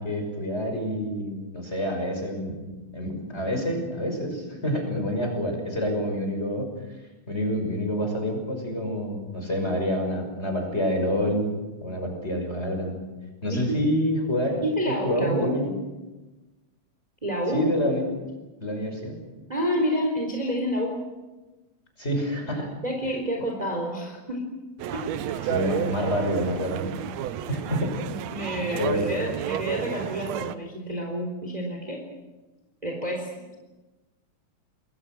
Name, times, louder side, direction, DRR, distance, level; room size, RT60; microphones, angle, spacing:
voice 1, 0.0-6.7 7.3-11.5 11.8-13.0 13.4-15.7 17.5-18.0 18.6-19.2 22.0-22.7 25.5-26.9 27.5-27.9 28.7-29.1, equal, 20° left, 3 dB, 6.2 m, -27 dB
voice 2, 13.5-13.8 14.6-15.6 17.2-17.7 19.5-21.0 22.8-24.4 24.9-25.5 28.1-32.0 32.8-33.6, equal, 10° right, 2 dB, 3.8 m, -29 dB
sound 1, 24.8-30.6, right 10 dB, 70° right, 1.9 m, -32 dB
28.0 x 22.0 x 6.3 m, 1.1 s
omnidirectional pair, 3.4 m